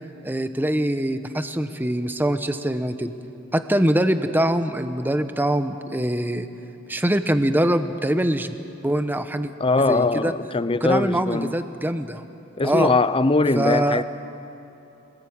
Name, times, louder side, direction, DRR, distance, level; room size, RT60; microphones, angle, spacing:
voice 1, 0.2-3.1 3.5-6.5 6.9-8.6 8.8-9.5 9.9-10.3 10.8-12.2 12.6-12.9 13.6-14.0, right 1 dB, 10° right, 0.9 m, -23 dB
voice 2, 9.6-11.6 12.6-14.0, left 3 dB, 25° left, 0.6 m, -21 dB
25.5 x 19.0 x 8.8 m
head